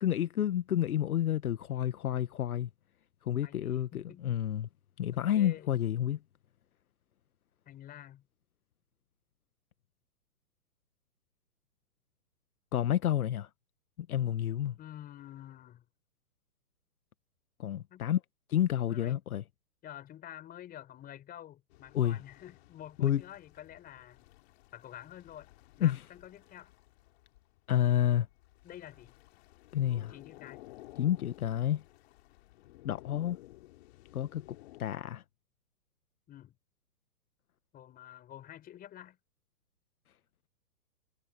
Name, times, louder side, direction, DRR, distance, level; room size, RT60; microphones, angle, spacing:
voice 1, 0.0-2.7 3.2-4.7 5.0-6.2 12.7-13.5 14.0-14.8 17.6-18.2 18.5-19.4 21.9-22.2 23.0-23.2 25.8-26.0 27.7-28.3 29.7-30.1 31.0-31.8 32.8-33.4 34.1-34.5 34.8-35.2, left 11 dB, 70° left, 1.3 m, -29 dB
voice 2, 3.4-4.2 5.1-5.7 7.7-8.2 14.8-15.8 17.9-18.1 18.9-19.2 19.8-24.2 24.7-25.5 25.8-26.7 28.6-29.1 29.9-30.6 36.3-36.5 37.7-39.2, left 11 dB, 20° left, 4.8 m, -49 dB
sound 1, 21.7-34.8, left 17 dB, 45° left, 2.8 m, -56 dB
hypercardioid pair, 140°, 45 cm